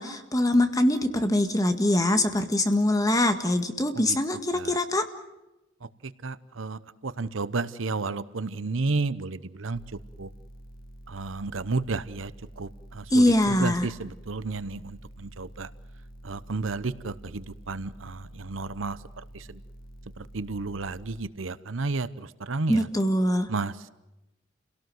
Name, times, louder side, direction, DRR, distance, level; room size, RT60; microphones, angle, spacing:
voice 1, 0.0-5.0 13.1-13.9 22.7-23.5, left 1 dB, 20° left, 7 dB, 1.8 m, -23 dB
voice 2, 6.0-10.3 11.1-15.7 16.2-19.6 20.2-22.9 23.5-23.9, right 3 dB, 80° right, 15 dB, 0.9 m, -32 dB
sound 1, 9.7-21.2, right 1 dB, 50° left, 1.5 m, -47 dB
29.5 x 17.5 x 7.9 m, 0.96 s
head